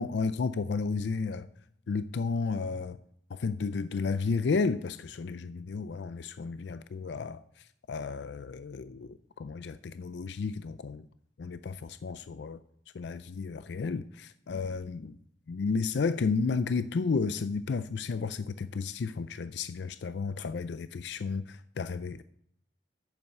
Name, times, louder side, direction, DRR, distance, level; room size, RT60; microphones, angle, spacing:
voice 1, 0.0-1.5 1.9-3.0 3.3-11.1 11.4-12.6 12.9-15.2 15.5-22.2, left 4 dB, 70° left, 0.4 m, -32 dB
8.7 x 7.1 x 7.8 m
head